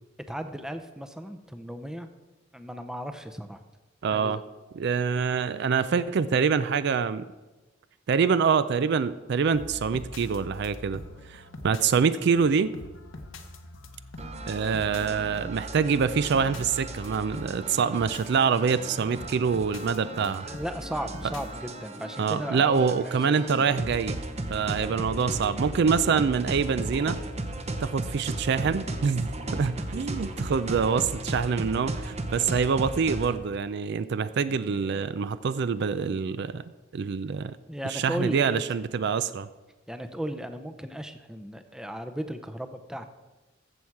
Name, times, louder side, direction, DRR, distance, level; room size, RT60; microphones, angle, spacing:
voice 1, 0.3-2.1 2.5-3.6 4.1-4.4 20.5-23.7 34.5-35.1 37.7-38.6 39.9-43.1, equal, 5° right, 8 dB, 0.6 m, -36 dB
voice 2, 4.0-4.4 4.7-7.3 8.1-11.0 11.3-12.7 14.5-20.5 22.2-24.2 24.5-27.2 27.8-36.6 36.9-37.6 37.9-39.5, right 6 dB, 60° right, 14 dB, 0.4 m, -25 dB
sound 1, 9.4-21.6, left 1 dB, 85° left, 1.1 m, -43 dB
sound 2, 14.2-33.4, right 2 dB, 35° right, 0.8 m, -36 dB
14.0 x 7.1 x 4.7 m, 1.1 s
head